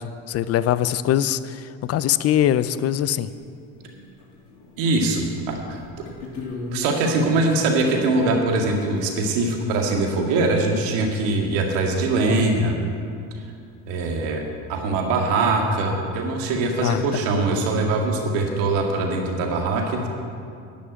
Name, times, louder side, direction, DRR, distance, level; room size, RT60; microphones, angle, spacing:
voice 1, 0.0-3.3 16.8-17.3, left 11 dB, 45° left, 15 dB, 0.5 m, -22 dB
sound 1, 3.3-3.4 3.8-4.8 5.2-9.5 12.2-12.3 12.4-12.5 13.6-13.7 14.2-14.3 17.9-18.0 18.2-18.6, left 2 dB, 80° left, 3.0 m, -36 dB
voice 2, 4.8-5.8 6.7-12.8 13.9-14.4 14.7-20.1, right 2 dB, 85° right, 1 dB, 2.1 m, -22 dB
11.0 x 6.3 x 9.2 m, 2.4 s
supercardioid pair, 100°, 35 cm